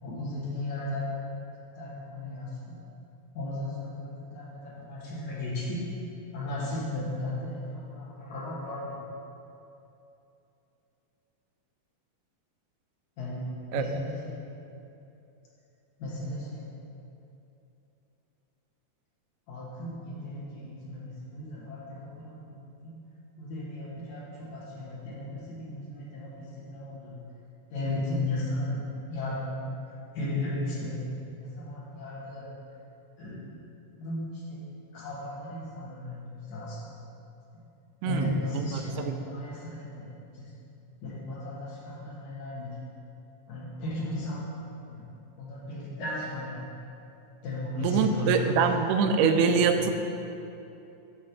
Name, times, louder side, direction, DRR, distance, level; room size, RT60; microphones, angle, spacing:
voice 1, 0.0-1.1 1.8-2.5 3.3-5.8 6.3-8.9 13.2-14.4 16.0-16.6 19.5-22.5 22.8-22.9 23.4-27.2 27.7-28.8 29.1-29.7 30.1-31.0 31.3-32.5 33.2-33.5 34.0-34.6 34.9-36.8 38.0-40.1 40.3-40.5 41.0-42.8 43.5-44.5 44.9-45.0 45.4-46.7 47.4-48.5 48.8-48.9 49.2-49.6, left 1 dB, 65° left, -6 dB, 2.7 m, -35 dB
voice 2, 13.7-14.0 38.0-39.2 47.8-49.9, right 5 dB, 85° right, 6 dB, 2.2 m, -25 dB
9.3 x 3.2 x 6.6 m, 2.8 s
omnidirectional pair, 3.8 m